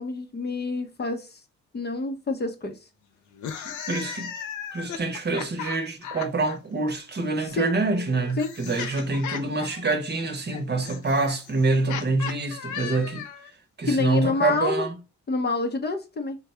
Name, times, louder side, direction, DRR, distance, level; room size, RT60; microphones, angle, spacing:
voice 1, 0.0-1.4 1.7-2.8 7.4-7.7 8.4-8.5 13.9-14.9 15.3-16.4, left 3 dB, 35° left, 0.8 m, -27 dB
sound 1, 3.3-6.6 7.6-13.5, left 7 dB, 75° left, 0.7 m, -36 dB
voice 2, 3.6-4.3 4.7-13.2 13.8-14.9, right 3 dB, 35° right, 0.9 m, -26 dB
3.6 x 2.3 x 4.2 m
cardioid pair, 90°, 30 cm